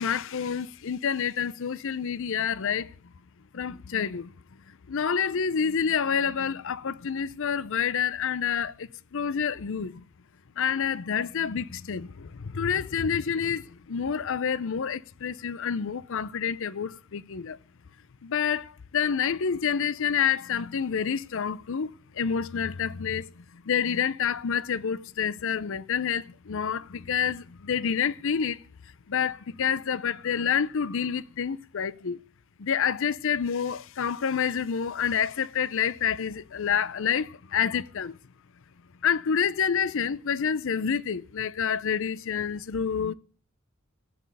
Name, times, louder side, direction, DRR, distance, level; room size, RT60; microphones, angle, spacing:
voice 1, 0.0-2.9 3.5-4.3 4.9-10.1 10.6-17.6 18.2-28.6 29.1-32.2 32.6-38.2 39.0-43.1, left 7 dB, 65° left, 0.6 m, -28 dB
13.0 x 8.5 x 6.6 m
head